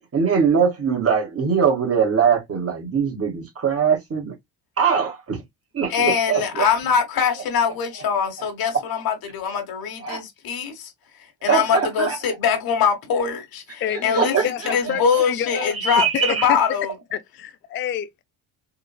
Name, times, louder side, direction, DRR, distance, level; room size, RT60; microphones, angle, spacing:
voice 1, 0.1-4.3 4.8-5.4 5.7-6.6 10.0-10.2 11.4-12.4 13.9-15.0 15.6-16.5, right 6 dB, 30° right, 1.8 m, -22 dB
voice 2, 5.9-10.9 11.4-14.3 14.7-16.9, left 6 dB, 50° left, 1.3 m, -23 dB
voice 3, 13.8-15.8 16.1-16.6 17.1-18.2, left 10 dB, 25° left, 0.4 m, -28 dB
3.8 x 2.4 x 2.3 m
supercardioid pair, 80°, 46 cm